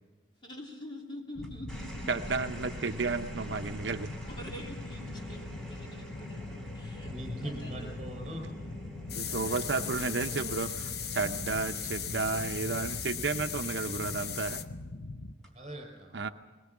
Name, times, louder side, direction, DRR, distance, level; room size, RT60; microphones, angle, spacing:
voice 1, 0.4-2.1 4.3-7.1 7.4-7.9 9.3-10.6, equal, 25° left, 0 dB, 2.9 m, -46 dB
sound 1, 1.3-15.3, left 2 dB, 90° left, 0.9 m, -42 dB
sound 2, 1.4-14.0 15.3-15.7, left 1 dB, 5° left, 4.0 m, -47 dB
voice 2, 2.1-4.1 9.1-14.6 16.1-16.3, right 4 dB, 75° right, 7 dB, 0.7 m, -32 dB
voice 3, 7.1-8.4 15.5-16.2, right 1 dB, 35° right, 2 dB, 6.2 m, -41 dB
sound 3, 9.1-14.7, left 8 dB, 60° left, 0.9 m, -38 dB
21.5 x 20.5 x 7.3 m, 1.4 s
head